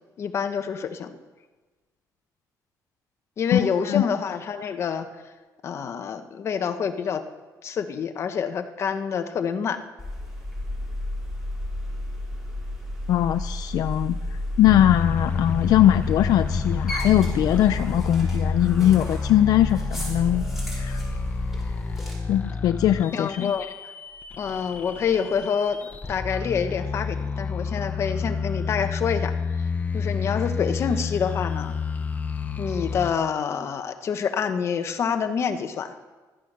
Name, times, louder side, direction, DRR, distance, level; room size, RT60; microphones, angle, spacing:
voice 1, 0.2-1.2 3.4-5.1 5.6-7.2 7.6-9.8 23.1-23.7 24.4-25.8 26.1-29.3 29.9-31.7 32.6-35.9, left 6 dB, 40° left, 8 dB, 1.1 m, -27 dB
voice 2, 3.5-4.1 13.1-20.4 20.7-21.0 22.3-23.5, left 12 dB, 65° left, 10 dB, 0.5 m, -21 dB
sound 1, 10.0-22.1, left 1 dB, 5° right, 5.7 m, -32 dB
sound 2, 14.7-33.1, left 5 dB, 25° left, 0.8 m, -30 dB
16.0 x 12.5 x 6.7 m, 1.3 s
cardioid pair, 170°, 7 cm